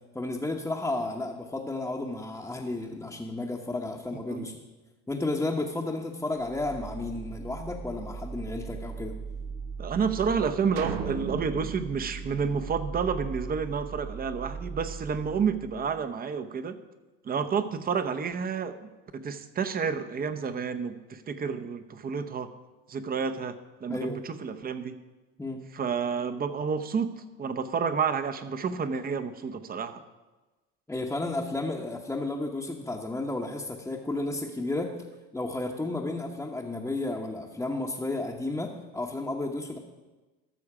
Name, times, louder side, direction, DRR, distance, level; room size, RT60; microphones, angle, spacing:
voice 1, 0.1-4.5 5.1-9.1 23.9-24.2 25.4-25.6 30.9-34.9 35.3-39.8, left 2 dB, 10° left, -2 dB, 0.9 m, -32 dB
sound 1, 6.4-16.0, right 5 dB, 60° right, 2.6 m, -39 dB
voice 2, 9.8-16.8 17.2-22.5 22.9-25.0 25.7-27.1 27.4-30.0, right 6 dB, 30° right, 10 dB, 0.8 m, -30 dB
sound 2, 10.8-13.2, right 7 dB, 90° right, 0.9 m, -37 dB
13.5 x 6.3 x 4.9 m, 1.2 s
supercardioid pair, 100°, 30 cm